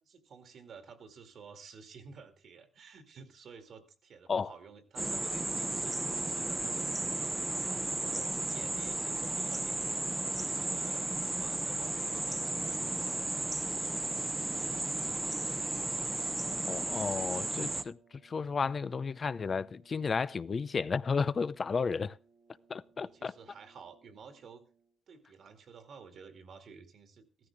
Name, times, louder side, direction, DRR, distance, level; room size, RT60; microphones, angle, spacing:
voice 1, 0.0-6.9 7.2-12.4 12.7-13.5 13.8-15.3 23.0-24.6 25.1-27.5, right 5 dB, 60° right, 2.3 m, -52 dB
sound 1, 5.0-17.8, right 2 dB, 15° right, 0.8 m, -34 dB
sound 2, 9.8-25.0, right 6 dB, 80° right, 3.8 m, -65 dB
voice 2, 16.7-18.0 18.2-22.2 22.7-23.3, left 5 dB, 40° left, 0.6 m, -33 dB
15.0 x 13.5 x 3.5 m
cardioid pair, 90°, 0 cm